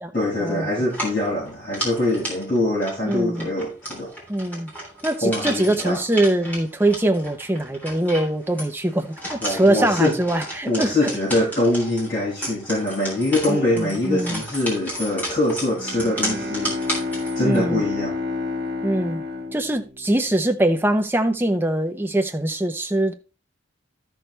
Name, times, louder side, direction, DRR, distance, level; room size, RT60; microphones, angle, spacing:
voice 1, 0.1-4.1 5.2-6.0 9.4-10.2 10.7-16.8 17.3-18.1, left 1 dB, 40° left, 6.2 m, -23 dB
sound 1, 0.8-17.6, equal, 10° left, 3.2 m, -33 dB
voice 2, 3.0-3.5 4.3-4.7 5.0-11.2 13.5-14.4 17.4-17.8 18.8-19.2 19.5-23.1, right 1 dB, 10° right, 0.8 m, -22 dB
Bowed string instrument, 15.7-20.6, left 3 dB, 50° right, 1.6 m, -30 dB
12.5 x 6.3 x 3.4 m
head